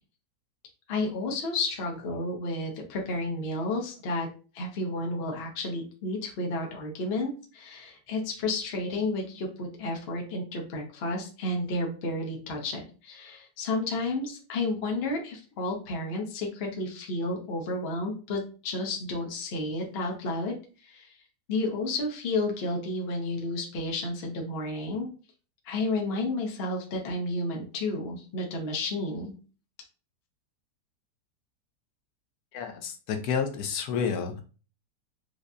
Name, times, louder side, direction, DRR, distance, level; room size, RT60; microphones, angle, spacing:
voice 1, 0.9-4.3 4.5-20.6 20.8-21.1 21.5-25.1 25.6-29.3, left 2 dB, 50° left, 1 dB, 0.8 m, -31 dB
voice 2, 32.5-34.4, left 6 dB, 70° left, 5 dB, 1.0 m, -30 dB
5.0 x 2.1 x 2.5 m, 0.36 s
omnidirectional pair, 1.8 m